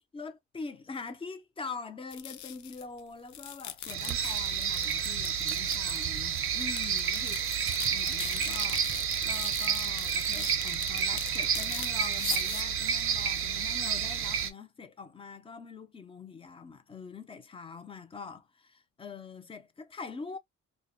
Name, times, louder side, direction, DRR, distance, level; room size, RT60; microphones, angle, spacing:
voice 1, 0.1-7.4 7.9-8.9 9.2-20.4, left 5 dB, 20° left, 0.4 m, -44 dB
sound 1, 2.1-3.0 3.3-13.5, left 11 dB, 80° left, 0.5 m, -42 dB
sound 2, 3.9-14.5, right 7 dB, 45° right, 0.5 m, -30 dB
2.5 x 2.1 x 2.4 m
cardioid pair, 135°, 29 cm